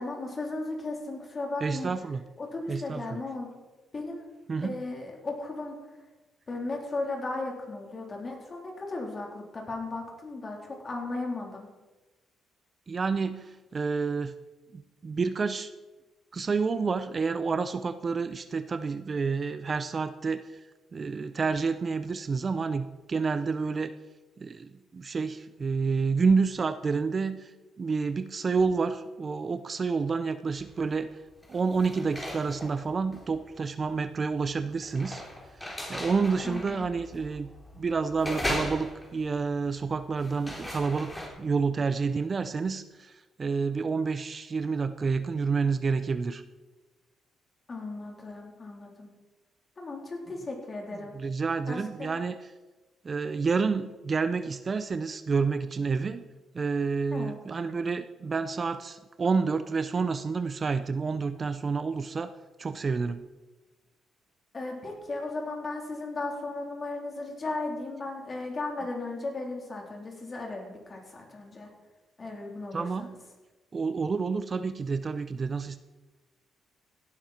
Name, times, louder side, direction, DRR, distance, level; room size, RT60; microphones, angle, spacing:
voice 1, 0.0-1.9 2.4-3.5 3.9-4.3 4.6-5.8 6.5-11.7 36.4-36.9 47.7-49.1 49.8-51.1 51.7-52.2 57.1-57.4 64.5-71.7 72.2-73.2, left 2 dB, 35° left, 0 dB, 3.8 m, -36 dB
voice 2, 1.6-2.2 2.7-3.2 4.5-4.8 12.9-14.3 14.7-15.7 16.3-20.4 20.9-23.9 24.4-27.5 27.8-31.1 31.5-35.2 35.9-37.5 37.8-43.1 43.4-46.4 51.1-52.4 53.0-56.2 56.5-62.3 62.6-63.2 72.7-73.1 73.7-75.8, right 4 dB, 35° right, 12 dB, 0.6 m, -29 dB
sound 1, 30.5-31.0 31.3-41.3, left 1 dB, 15° left, 3.5 m, -38 dB
16.5 x 11.0 x 4.4 m, 1.2 s
cardioid pair, 90°, 0 cm